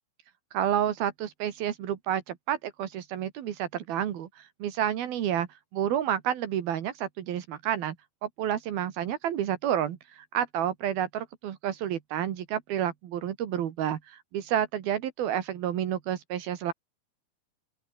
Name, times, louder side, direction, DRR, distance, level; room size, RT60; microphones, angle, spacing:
voice 1, 0.5-5.5 5.7-8.0 8.2-16.7, right 10 dB, 80° right, 3.6 m, -30 dB
open air
omnidirectional pair, 4.4 m